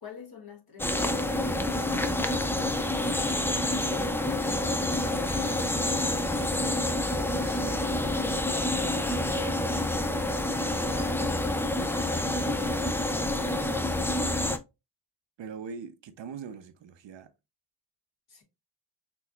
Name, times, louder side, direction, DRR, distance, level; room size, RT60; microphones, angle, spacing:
voice 1, 0.0-2.0 3.9-6.0 8.3-11.2 18.3-18.4, left 3 dB, 55° left, 2.0 m, -47 dB
sound 1, 0.8-14.6, left 1 dB, 5° left, 0.3 m, -28 dB
voice 2, 2.9-3.3 7.4-8.3 12.3-12.9 15.4-17.3, right 6 dB, 80° right, 0.8 m, -43 dB
6.1 x 3.0 x 2.4 m
wide cardioid pair, 120°, 44 cm